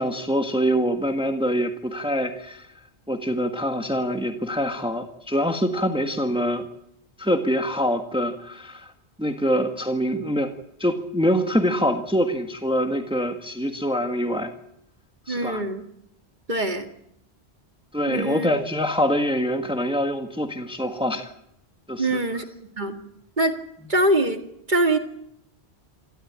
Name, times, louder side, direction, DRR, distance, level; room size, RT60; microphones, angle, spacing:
voice 1, 0.0-2.6 3.1-6.7 7.2-8.9 9.2-10.5 10.8-14.5 15.3-15.6 17.9-21.3 21.9-22.2, equal, 5° right, 5 dB, 1.6 m, -24 dB
voice 2, 15.3-15.8 16.5-16.9 18.1-18.5 22.0-22.4 22.8-23.0 23.4-23.6 23.9-24.4 24.7-25.0, right 1 dB, 45° right, 5 dB, 2.2 m, -23 dB
27.5 x 13.0 x 8.7 m, 0.75 s
omnidirectional pair, 1.1 m